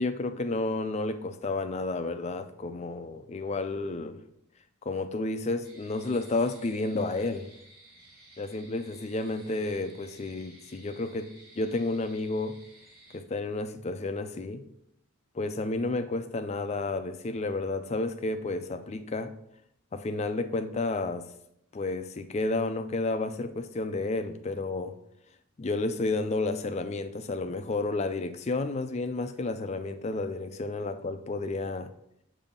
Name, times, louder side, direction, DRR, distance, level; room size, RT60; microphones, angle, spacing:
voice 1, 0.0-4.2 4.8-7.5 8.4-11.3 11.6-12.6 13.1-14.6 15.3-19.3 19.9-21.3 21.7-25.0 25.6-31.9, left 2 dB, 30° left, 9 dB, 0.3 m, -31 dB
sound 1, 5.6-13.2, right 1 dB, 45° right, 1.4 m, -55 dB
7.0 x 2.7 x 5.2 m, 0.75 s
head